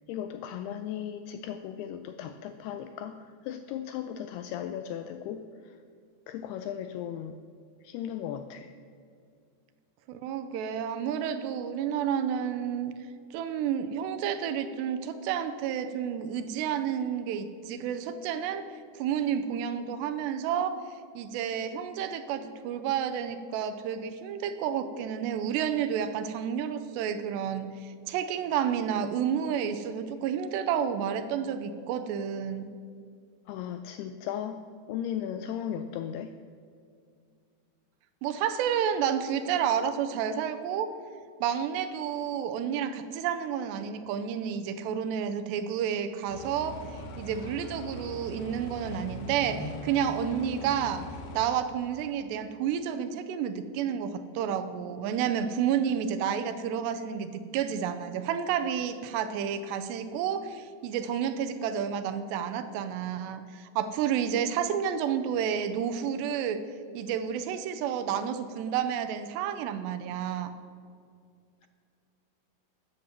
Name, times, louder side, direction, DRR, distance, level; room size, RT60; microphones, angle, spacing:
voice 1, 0.1-5.8 6.3-7.4 7.8-8.7 33.5-34.6 34.9-36.3, left 9 dB, 85° left, 8 dB, 2.3 m, -36 dB
voice 2, 10.1-12.9 13.3-18.7 18.9-20.8 21.1-32.7 38.2-41.0 41.4-51.1 51.3-66.6 66.9-70.5, right 8 dB, 85° right, 9 dB, 2.8 m, -30 dB
sound 1, 46.3-51.5, left 1 dB, 65° left, 2.7 m, -41 dB
13.5 x 9.4 x 7.4 m, 2.3 s
omnidirectional pair, 5.1 m